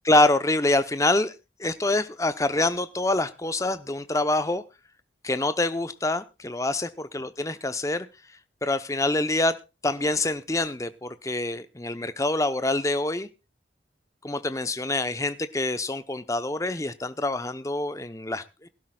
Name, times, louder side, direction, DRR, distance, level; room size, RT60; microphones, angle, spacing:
voice 1, 0.0-1.3 1.6-4.6 5.2-8.1 8.6-9.6 9.8-13.3 14.2-18.7, left 2 dB, 15° left, 12 dB, 0.7 m, -26 dB
22.0 x 12.0 x 2.3 m, 0.27 s
head